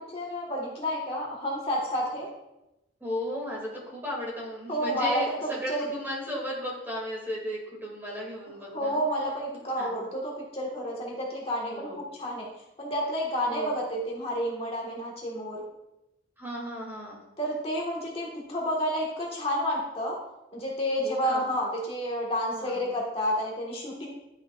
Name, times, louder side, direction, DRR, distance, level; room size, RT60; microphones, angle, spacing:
voice 1, 0.0-2.3 4.7-5.9 8.7-12.5 12.8-15.6 17.4-20.2 20.5-24.1, equal, 35° left, -3 dB, 1.5 m, -30 dB
voice 2, 3.0-9.0 9.8-10.0 11.6-12.0 13.4-13.8 16.4-17.2 21.0-21.5 22.5-22.9, equal, 10° right, -4 dB, 2.3 m, -35 dB
11.0 x 6.6 x 2.4 m, 0.93 s
head